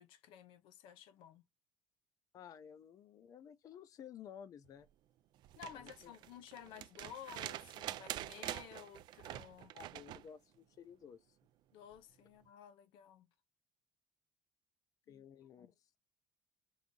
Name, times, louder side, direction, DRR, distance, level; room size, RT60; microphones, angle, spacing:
voice 1, 0.0-1.4 5.6-9.7 11.7-13.3 15.1-15.2 15.6-15.7, left 9 dB, 85° left, 0.6 m, -54 dB
voice 2, 2.3-4.9 5.7-6.1 9.7-11.2 15.1-15.7, left 8 dB, 45° left, 0.5 m, -54 dB
sound 1, 5.4-10.3 11.9-12.0, right 14 dB, 60° right, 0.3 m, -46 dB
4.7 x 2.6 x 3.7 m
cardioid pair, 140°, 8 cm